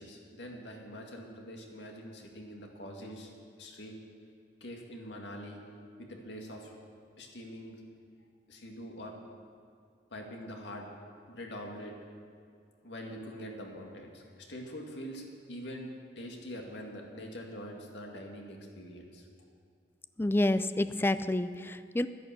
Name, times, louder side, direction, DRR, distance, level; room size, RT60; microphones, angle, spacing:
voice 1, 0.0-3.3 3.6-3.9 4.6-5.6 6.0-6.7 7.2-7.8 8.5-9.1 10.1-10.9 11.3-11.9 12.8-15.9 16.2-19.3, equal, 80° left, 1 dB, 2.1 m, -44 dB
voice 2, 20.2-22.1, left 1 dB, 15° left, 12 dB, 0.4 m, -28 dB
12.0 x 10.5 x 7.5 m, 2.4 s
head